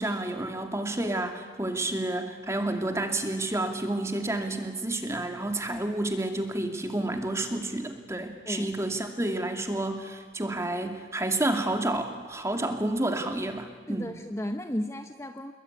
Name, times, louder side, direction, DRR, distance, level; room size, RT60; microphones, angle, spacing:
voice 1, 0.0-14.1, right 1 dB, 15° right, 5 dB, 2.4 m, -30 dB
voice 2, 13.9-15.5, left 1 dB, 15° left, 6 dB, 1.0 m, -34 dB
27.5 x 22.0 x 9.6 m, 1.6 s
head